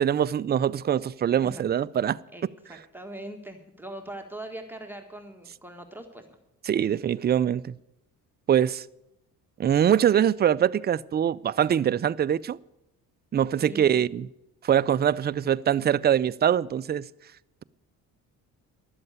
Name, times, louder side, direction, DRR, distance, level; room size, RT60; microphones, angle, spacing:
voice 1, 0.0-2.2 6.7-7.8 8.5-8.8 9.6-12.6 13.3-14.3 14.6-17.1, right 9 dB, 30° right, 0.4 m, -23 dB
voice 2, 2.3-6.4 13.6-14.0, right 1 dB, 5° right, 1.6 m, -41 dB
12.0 x 7.7 x 9.5 m
supercardioid pair, 70°, 36 cm